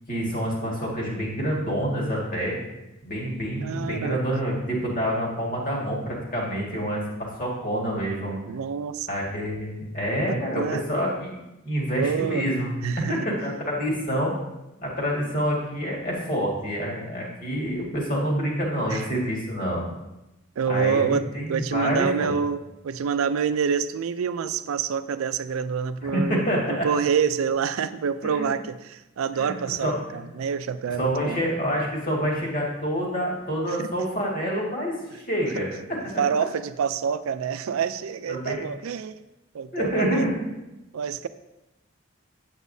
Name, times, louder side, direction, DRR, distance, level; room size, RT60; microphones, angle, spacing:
voice 1, 0.1-2.6 3.0-8.4 9.1-12.7 13.1-14.3 14.8-19.8 20.7-22.3 26.0-26.9 28.2-28.5 29.3-30.2 31.0-36.0 38.3-38.6 39.7-40.5, equal, 40° left, -3 dB, 1.9 m, -27 dB
voice 2, 3.6-4.2 8.5-9.1 10.3-10.8 12.0-12.6 12.8-13.2 18.9-19.1 20.6-26.4 26.8-31.4 33.7-33.9 36.2-39.2 39.5-40.3 40.9-41.3, right 6 dB, 90° right, 13 dB, 0.4 m, -27 dB
8.1 x 8.1 x 2.7 m, 0.97 s
head